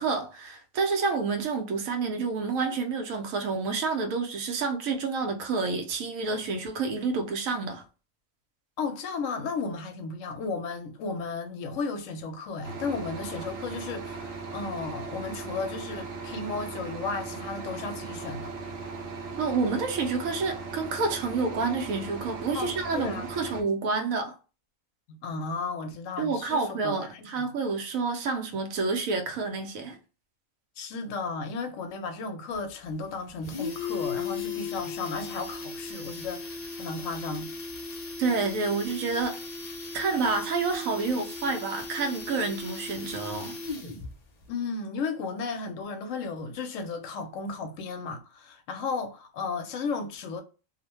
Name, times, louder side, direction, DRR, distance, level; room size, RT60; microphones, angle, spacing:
voice 1, 0.0-7.8 19.3-24.3 26.2-30.0 38.2-39.4 39.9-43.5, right 4 dB, 90° right, 1.1 m, -29 dB
voice 2, 8.8-18.5 22.5-23.3 25.1-27.2 30.8-37.5 44.5-50.4, left 4 dB, 75° left, 0.9 m, -34 dB
sound 1, 12.6-23.6, right 4 dB, 60° right, 0.7 m, -38 dB
sound 2, 32.5-32.6 32.9-33.0 33.3-44.1 44.4-44.5, left 4 dB, 55° left, 0.4 m, -37 dB
2.7 x 2.1 x 2.9 m
omnidirectional pair, 1.4 m